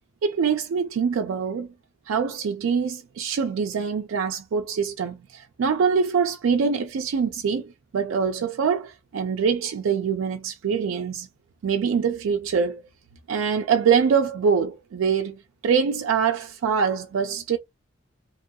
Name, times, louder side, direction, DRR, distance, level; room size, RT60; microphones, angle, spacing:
voice 1, 0.2-1.7 2.1-11.3 11.6-12.8 13.3-17.6, right 6 dB, 90° right, 0.3 m, -24 dB
2.9 x 2.2 x 2.6 m
head